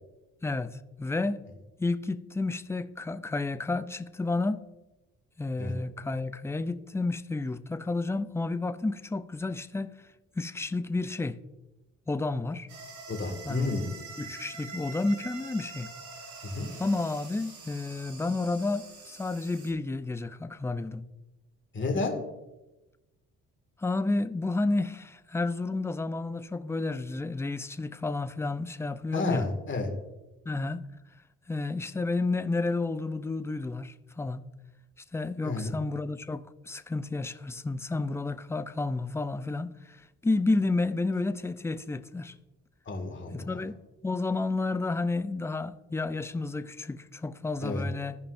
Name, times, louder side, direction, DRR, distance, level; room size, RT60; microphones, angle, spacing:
voice 1, 0.4-1.4 1.8-4.7 5.4-10.0 10.4-11.4 12.1-12.7 13.4-13.8 14.2-15.9 16.8-21.0 23.8-29.5 30.5-30.9 31.5-34.4 35.1-40.0 40.2-42.3 43.3-43.7 44.0-48.2, left 3 dB, 10° left, 0.4 m, -31 dB
sound 1, 12.7-19.7, right 4 dB, 70° right, 2.1 m, -45 dB
voice 2, 13.1-13.9 16.4-16.7 21.7-22.1 29.1-29.9 35.4-35.8 42.9-43.5 47.6-47.8, left 3 dB, 40° left, 2.0 m, -31 dB
15.0 x 5.4 x 2.6 m
cardioid pair, 90°, 30 cm